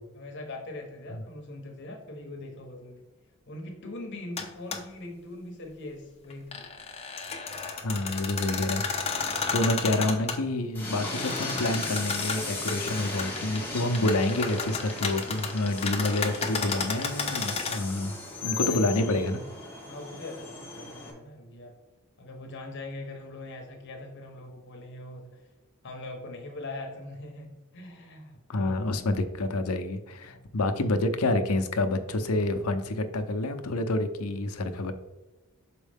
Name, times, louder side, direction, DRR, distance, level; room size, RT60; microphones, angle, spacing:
voice 1, 0.1-3.0 3.5-6.7 7.8-8.1 18.5-18.9 19.8-21.7 22.2-25.4 25.8-28.9 30.2-30.5 34.7-34.9, left 2 dB, 50° left, 2 dB, 1.0 m, -42 dB
sound 1, 4.4-4.5 4.7-4.8 6.3-10.4 11.1-13.6 13.9-17.8, left 5 dB, 30° left, 0.8 m, -32 dB
voice 2, 7.8-19.4 28.5-34.9, left 2 dB, 75° left, 7 dB, 0.7 m, -28 dB
Train, 10.7-21.1, left 3 dB, 10° left, 1.2 m, -37 dB
6.3 x 4.6 x 3.5 m, 1.1 s
head